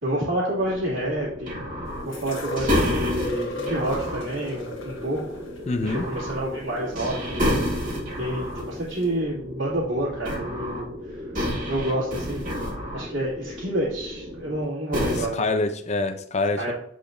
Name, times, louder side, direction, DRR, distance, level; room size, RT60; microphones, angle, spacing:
voice 1, 0.0-1.6 2.0-5.4 6.0-7.5 8.1-11.3 11.7-12.6 12.9-15.5 16.6-16.7, right 1 dB, 75° right, -10 dB, 2.3 m, -29 dB
sound 1, 0.6-14.6 14.9-15.2, equal, 40° right, 2.4 m, -30 dB
sound 2, 2.1-8.2 9.0-9.1, left 1 dB, 65° left, 1.5 m, -37 dB
voice 2, 5.7-6.1 15.2-16.7, left 3 dB, 35° left, 7 dB, 0.6 m, -26 dB
9.0 x 4.9 x 2.6 m, 0.67 s
head